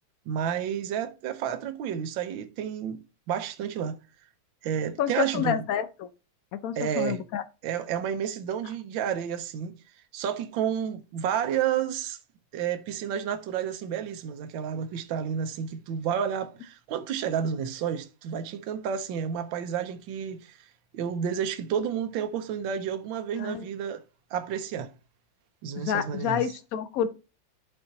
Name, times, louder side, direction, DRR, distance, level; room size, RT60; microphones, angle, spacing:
voice 1, 0.3-3.0 3.3-4.0 4.6-5.6 6.8-7.2 7.6-9.7 10.1-12.2 12.5-20.7 20.9-24.0 24.3-24.9 25.6-26.5, right 8 dB, 75° right, 1.5 m, -30 dB
voice 2, 5.0-6.1 6.5-7.4 23.4-23.7 25.8-27.1, left 9 dB, 80° left, 0.7 m, -29 dB
11.5 x 4.4 x 2.8 m
omnidirectional pair, 2.2 m